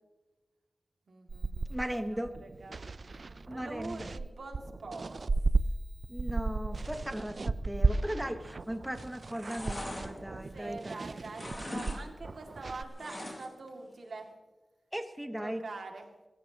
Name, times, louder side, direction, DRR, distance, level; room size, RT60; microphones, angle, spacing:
voice 1, 1.1-1.8 2.1-2.8 3.4-5.2 10.5-14.3 15.4-16.1, right 3 dB, 85° right, 2 dB, 2.4 m, -44 dB
sound 1, 1.3-5.6 6.0-12.8, right 3 dB, 55° right, 0.5 m, -34 dB
voice 2, 1.7-2.3 3.5-4.1 6.1-11.1 14.9-15.6, equal, 5° right, 7 dB, 1.2 m, -37 dB
sound 2, 8.6-8.9 9.2-11.0 11.3-12.0 12.3-13.7 14.0-14.1, left 1 dB, 35° left, 4.2 m, -42 dB
29.5 x 15.0 x 3.0 m, 1.2 s
wide cardioid pair, 80°, 0 cm